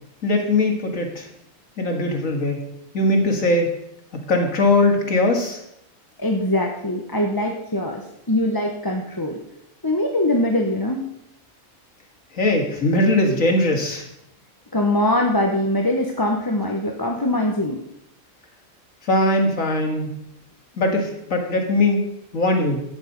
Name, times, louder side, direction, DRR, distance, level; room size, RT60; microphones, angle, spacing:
voice 1, 0.2-1.3 1.8-2.6 2.9-3.7 4.1-5.6 12.4-14.0 19.1-20.1 20.8-22.0 22.3-22.8, left 2 dB, 75° left, 2 dB, 2.5 m, -20 dB
voice 2, 6.2-9.4 9.8-11.1 14.7-17.8, left 1 dB, 20° left, 1 dB, 0.9 m, -22 dB
12.5 x 8.7 x 5.3 m, 0.80 s
omnidirectional pair, 1.4 m